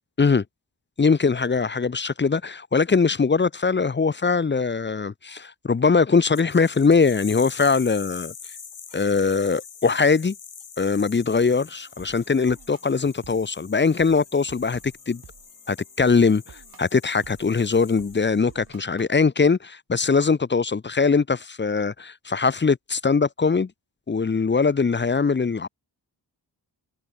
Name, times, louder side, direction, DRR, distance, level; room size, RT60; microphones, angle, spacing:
voice 1, 1.0-8.3 8.9-10.3 10.8-15.2 15.7-23.7 24.1-25.7, left 4 dB, 25° left, 0.6 m, -21 dB
sound 1, 6.3-18.7, left 6 dB, 85° left, 6.3 m, -44 dB
sound 2, 11.6-19.2, right 6 dB, 55° right, 2.0 m, -52 dB
wide cardioid pair, 95°, 41 cm